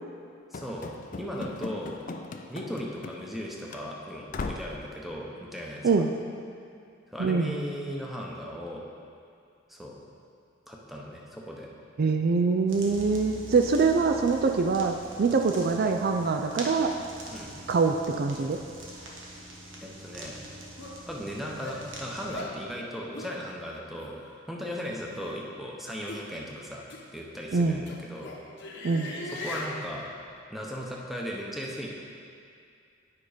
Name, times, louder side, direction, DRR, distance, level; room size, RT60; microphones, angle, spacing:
Run / Slam, 0.5-3.4 3.7-3.8 4.3-4.8, left 3 dB, 45° left, 0.4 m, -38 dB
voice 1, 0.5-0.9 1.2-2.0 2.5-6.0 7.1-8.8 9.7-10.0 10.7-11.7 17.3-17.5 19.8-20.4 21.1-24.2 24.5-26.9 27.1-28.3 29.3-30.1 30.5-31.9, equal, ahead, -2 dB, 0.9 m, -37 dB
voice 2, 7.2-7.5 12.0-16.9 17.7-18.6 27.5-27.8 28.8-29.1, right 4 dB, 50° right, 5 dB, 0.4 m, -24 dB
sound 1, 12.7-22.3, right 1 dB, 75° right, 1.3 m, -44 dB
sound 2, 20.1-20.2 20.8-21.0 21.6-21.8 22.3-22.6 23.1-23.3 24.0-24.1 25.1-25.3 26.1-26.3 26.9-27.0 27.5-29.8, left 2 dB, 65° left, 1.0 m, -39 dB
9.5 x 5.2 x 5.0 m, 2.4 s
head